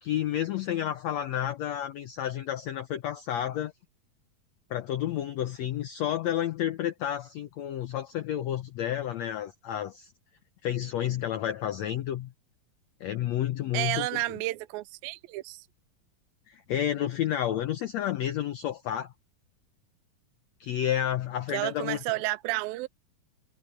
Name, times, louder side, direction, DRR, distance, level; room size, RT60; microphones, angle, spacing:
voice 1, 0.0-3.7 4.7-10.1 10.6-12.3 13.0-14.4 16.5-19.1 20.6-22.0, left 11 dB, 80° left, 1.5 m, -30 dB
voice 2, 13.7-15.6 21.5-22.9, right 19 dB, 85° right, 2.4 m, -31 dB
omnidirectional pair, 4.1 m